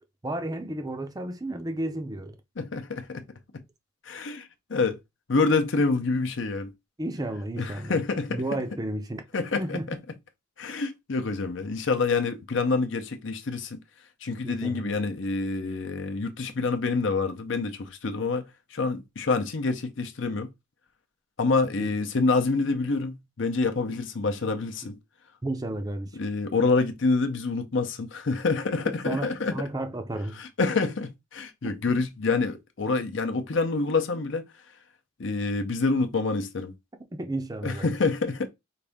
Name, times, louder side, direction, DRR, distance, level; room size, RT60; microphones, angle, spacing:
voice 1, 0.2-2.4 7.0-8.0 8.3-9.2 9.5-9.9 14.4-15.1 21.8-21.9 25.4-26.1 28.9-30.4 31.6-31.8 37.1-37.9, right 1 dB, 20° right, 0.5 m, -32 dB
voice 2, 2.6-3.2 3.5-3.6 4.0-5.0 5.3-6.7 7.6-8.4 9.3-9.8 10.6-13.8 14.2-20.5 21.4-25.0 26.1-29.5 30.4-34.4 35.2-36.7 37.6-38.5, left 3 dB, 65° left, 0.6 m, -27 dB
4.9 x 2.6 x 3.5 m
head